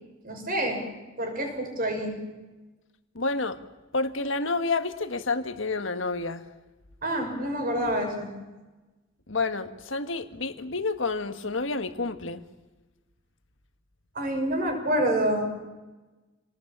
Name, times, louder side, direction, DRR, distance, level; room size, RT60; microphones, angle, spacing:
voice 1, 0.2-0.8 1.2-2.2 7.0-8.3 14.1-15.5, right 1 dB, 45° right, 4 dB, 6.0 m, -27 dB
voice 2, 3.1-3.6 3.9-6.4 9.3-12.4, left 3 dB, 65° left, 9 dB, 1.6 m, -29 dB
27.0 x 19.0 x 8.7 m, 1.2 s
head